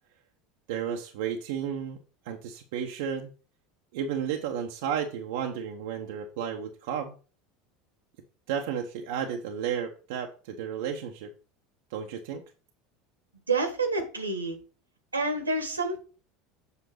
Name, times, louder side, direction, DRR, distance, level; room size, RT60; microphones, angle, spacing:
voice 1, 0.7-2.0 2.2-3.3 3.9-7.1 8.5-11.3 11.9-12.4, right 8 dB, 60° right, 1.0 m, -32 dB
voice 2, 13.5-14.6 15.1-16.0, right 3 dB, 80° right, 1.6 m, -28 dB
8.3 x 5.8 x 4.7 m
figure-of-eight pair, 75°, 0 cm